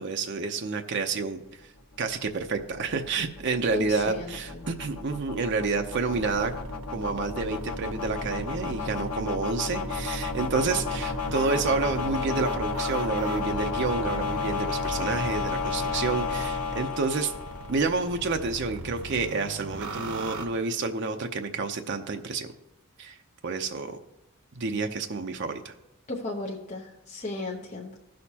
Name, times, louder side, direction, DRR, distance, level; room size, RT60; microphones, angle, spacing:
voice 1, 0.0-1.7 2.0-6.5 6.9-17.3 17.7-22.5 23.0-23.2 23.4-24.0 24.6-25.7, right 4 dB, 55° right, 5 dB, 0.6 m, -29 dB
sound 1, 1.9-18.1, left 4 dB, 85° left, 1.2 m, -32 dB
voice 2, 3.7-4.6 26.1-28.0, left 2 dB, 35° left, -1 dB, 0.9 m, -35 dB
sound 2, 6.1-9.1 9.7-16.8 17.3-20.5, right 2 dB, 80° right, 0.9 m, -40 dB
16.0 x 6.5 x 2.8 m, 0.93 s
head